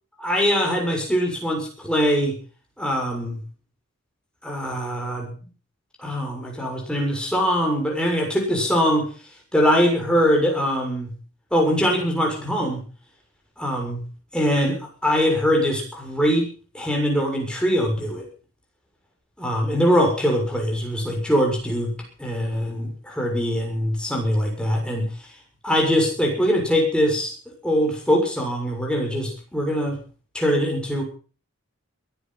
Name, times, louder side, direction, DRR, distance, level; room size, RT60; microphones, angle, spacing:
voice 1, 0.2-2.3 2.8-3.4 4.4-5.3 6.0-9.1 9.5-11.1 11.5-12.8 13.6-14.0 14.3-16.5 16.7-18.3 19.4-21.9 22.2-25.1 25.6-27.3 27.6-30.0 30.3-31.0, equal, 5° left, 0 dB, 6.9 m, -22 dB
22.5 x 10.5 x 5.8 m, 0.39 s
head